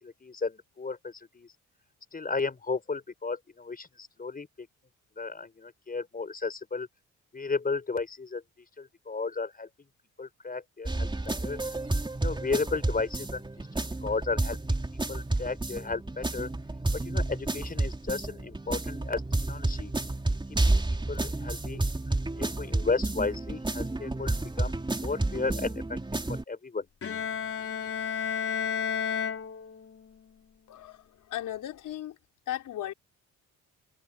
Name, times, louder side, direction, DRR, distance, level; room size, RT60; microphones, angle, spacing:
voice 1, 0.0-1.5 2.1-4.7 5.2-6.9 7.3-8.4 8.8-9.7 10.2-11.6 12.2-14.8 15.1-16.5 16.9-19.2 19.5-19.9 20.3-20.4 20.7-20.8 21.1-21.8 22.4-24.7 25.0-26.0 26.5-26.9, left 4 dB, 30° left, 5.2 m, -34 dB
sound 1, 10.9-26.4, right 2 dB, 15° right, 3.9 m, -30 dB
Bowed string instrument, 27.0-30.1, left 7 dB, 45° left, 4.0 m, -32 dB
voice 2, 30.7-32.2 32.5-32.9, left 12 dB, 80° left, 5.2 m, -36 dB
cardioid pair, 90°, 31 cm